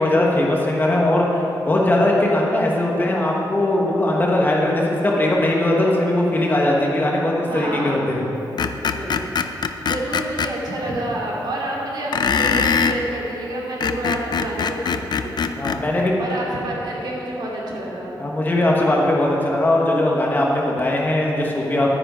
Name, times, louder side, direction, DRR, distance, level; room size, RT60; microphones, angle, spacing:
voice 1, 0.0-8.3 15.6-16.1 18.2-21.9, left 1 dB, 25° left, -2 dB, 1.3 m, -19 dB
voice 2, 7.5-8.0 8.9-9.2 9.8-15.4 16.2-18.2, right 1 dB, 60° right, -4 dB, 2.6 m, -28 dB
Screech, 8.6-10.5 12.1-13.0 13.6-15.8, left 6 dB, 60° left, 0.5 m, -22 dB
11.0 x 9.7 x 5.1 m, 3.0 s
wide cardioid pair, 175°, 8 cm